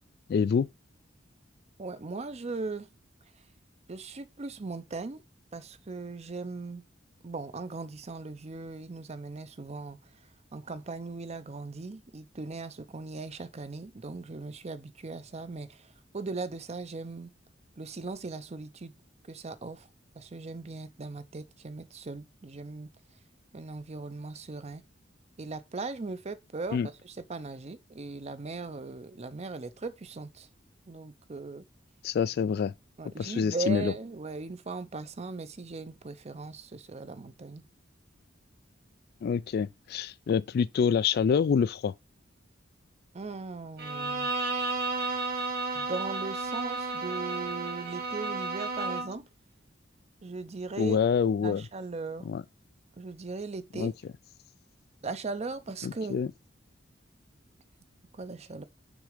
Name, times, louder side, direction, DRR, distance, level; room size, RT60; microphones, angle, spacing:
voice 1, 0.3-0.7 26.7-26.9 32.0-32.7 33.2-33.9 39.2-41.9 50.8-51.7 52.2-52.4 53.7-53.9 55.8-56.3, left 6 dB, 55° left, 0.3 m, -26 dB
voice 2, 1.8-2.9 3.9-5.2 5.5-6.8 7.2-10.0 10.5-17.3 17.8-18.9 19.3-19.9 20.1-22.9 23.5-24.8 25.4-26.8 27.0-30.5 30.9-31.7 33.0-37.6 43.1-44.3 45.7-49.2 50.2-51.0 51.4-52.3 53.0-53.9 55.0-56.2 58.1-58.6, right 3 dB, 35° right, 0.6 m, -38 dB
Bowed string instrument, 43.8-49.2, right 3 dB, 55° right, 1.7 m, -32 dB
6.2 x 3.6 x 5.0 m
head